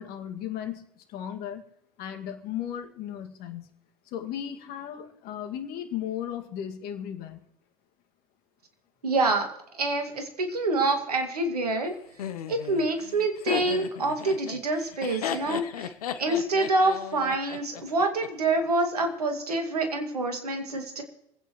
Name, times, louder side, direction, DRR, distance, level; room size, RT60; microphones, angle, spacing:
voice 1, 0.0-1.6 2.0-3.7 4.1-7.4, left 10 dB, 55° left, 5 dB, 2.0 m, -36 dB
voice 2, 9.0-9.5 9.7-11.9 12.5-21.0, right 2 dB, 90° right, 5 dB, 2.2 m, -26 dB
Laughter, 12.2-18.3, left 8 dB, 80° left, 0.9 m, -35 dB
26.5 x 9.2 x 3.1 m, 0.79 s
hypercardioid pair, 80°, 19 cm